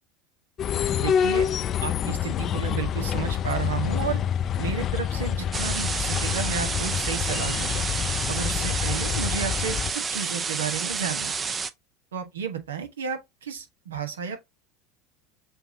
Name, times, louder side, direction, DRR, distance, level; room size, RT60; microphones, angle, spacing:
sound 1, 0.6-9.9, left 9 dB, 40° left, 0.4 m, -27 dB
voice 1, 1.0-1.5 1.8-4.2 4.6-7.8 8.3-11.4 12.1-14.4, right 7 dB, 90° right, 1.1 m, -32 dB
sound 2, 5.5-11.7, right 5 dB, 30° right, 0.5 m, -30 dB
6.8 x 2.7 x 2.7 m
hypercardioid pair, 85°, 0 cm